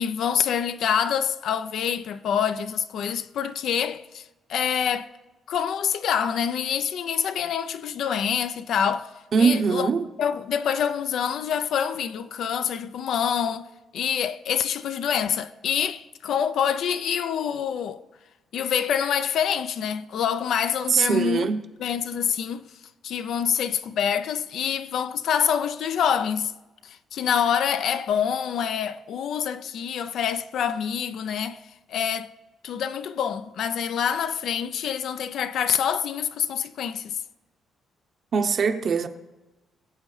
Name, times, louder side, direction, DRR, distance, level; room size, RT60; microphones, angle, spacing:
voice 1, 0.0-4.2 4.5-5.1 5.5-9.1 9.4-9.9 10.2-13.7 13.9-18.0 18.5-21.5 21.8-22.7 23.0-26.5 26.8-31.6 31.9-32.3 32.6-37.2, left 8 dB, 70° left, 0.5 m, -26 dB
voice 2, 9.3-10.0 20.9-21.6 38.3-39.1, right 5 dB, 50° right, 0.8 m, -21 dB
22.5 x 7.6 x 3.2 m
cardioid pair, 90°, 0 cm